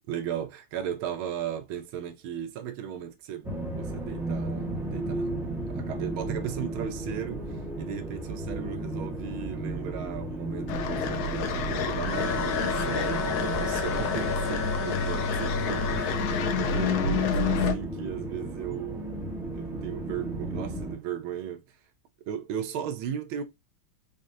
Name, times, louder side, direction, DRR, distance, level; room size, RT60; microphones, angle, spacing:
voice 1, 0.1-7.4 7.8-21.6 22.3-23.4, right 9 dB, 80° right, 1.5 m, -36 dB
sound 1, 3.4-21.0, right 1 dB, ahead, 1.0 m, -34 dB
sound 2, 10.7-17.7, left 4 dB, 70° left, 0.9 m, -28 dB
sound 3, 12.1-16.2, left 5 dB, 55° left, 1.4 m, -35 dB
3.8 x 3.7 x 2.6 m
omnidirectional pair, 2.3 m